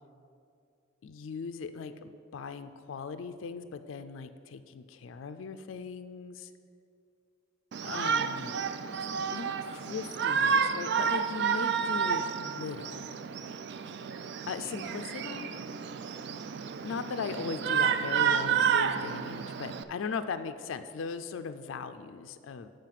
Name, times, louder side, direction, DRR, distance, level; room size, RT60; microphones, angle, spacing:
voice 1, 1.0-6.5 7.8-8.6 9.0-13.0 14.5-15.5 16.8-22.7, left 5 dB, 70° left, 10 dB, 0.4 m, -38 dB
Shout, 7.7-19.8, right 7 dB, 55° right, 0.3 m, -30 dB
9.1 x 5.1 x 5.8 m, 2.4 s
head